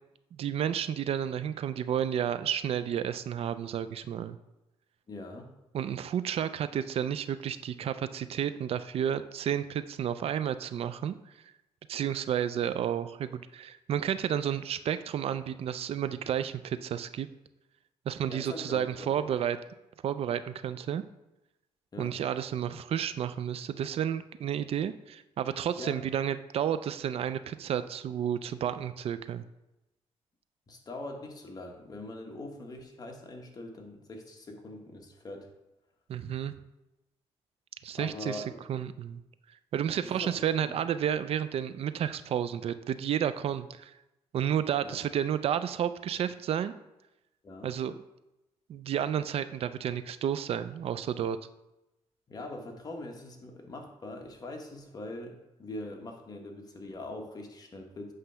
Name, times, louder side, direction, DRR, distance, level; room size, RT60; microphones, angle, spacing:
voice 1, 0.3-4.4 5.7-11.2 11.9-17.3 18.1-19.6 20.0-21.0 22.0-29.5 36.1-36.6 37.8-38.4 38.7-39.2 39.7-43.9 44.3-46.7 47.6-47.9 48.7-51.4, right 9 dB, 60° right, 12 dB, 0.4 m, -31 dB
voice 2, 5.1-5.5 18.3-19.3 21.9-22.1 25.8-26.0 30.7-35.5 38.0-38.6 40.0-40.8 44.8-45.0 47.4-47.7 52.3-58.1, left 2 dB, 35° left, 2 dB, 1.2 m, -42 dB
7.9 x 3.2 x 5.6 m, 0.94 s
cardioid pair, 120°, 11 cm